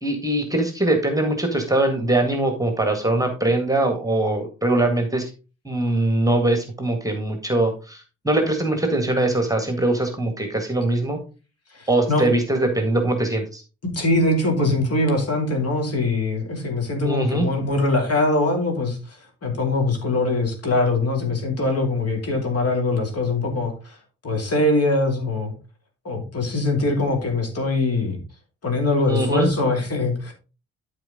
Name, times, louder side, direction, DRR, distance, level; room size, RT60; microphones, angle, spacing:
voice 1, 0.0-5.3 5.7-11.2 11.9-13.6 17.0-17.5 29.1-29.5, right 2 dB, 10° right, 5 dB, 1.8 m, -22 dB
voice 2, 11.7-12.2 13.9-19.0 19.4-23.9 24.2-25.5 26.0-28.2 28.6-30.3, left 2 dB, 40° left, 3 dB, 2.8 m, -22 dB
12.0 x 4.5 x 3.7 m, 0.32 s
figure-of-eight pair, 45°, 38 cm